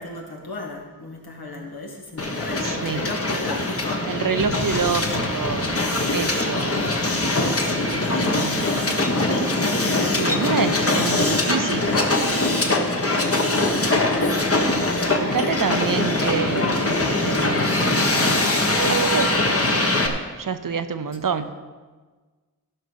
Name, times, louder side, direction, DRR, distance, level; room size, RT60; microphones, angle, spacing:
voice 1, 0.0-4.2 7.6-8.1 13.3-15.4 19.5-19.8, left 2 dB, 75° left, 0 dB, 2.1 m, -35 dB
Hiss, 2.2-20.1, left 2 dB, 40° left, 1.4 m, -22 dB
voice 2, 2.6-3.0 4.0-5.8 6.1-6.7 8.2-8.8 9.8-12.0 15.2-18.5 18.9-19.4 20.4-21.5, right 6 dB, 60° right, 10 dB, 0.7 m, -27 dB
14.5 x 5.5 x 6.4 m, 1.4 s
wide cardioid pair, 90°, 37 cm